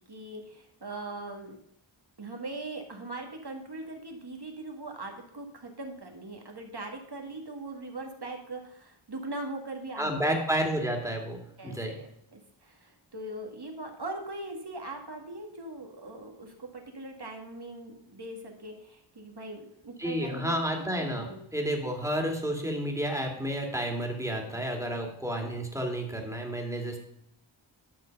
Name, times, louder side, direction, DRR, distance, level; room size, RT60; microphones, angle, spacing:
voice 1, 0.1-1.6 2.2-10.1 11.6-21.4, right 2 dB, 55° right, 2 dB, 1.9 m, -40 dB
voice 2, 10.0-12.0 20.0-27.0, equal, 5° right, 2 dB, 2.3 m, -31 dB
10.5 x 6.4 x 5.3 m, 0.75 s
wide cardioid pair, 55°, 47 cm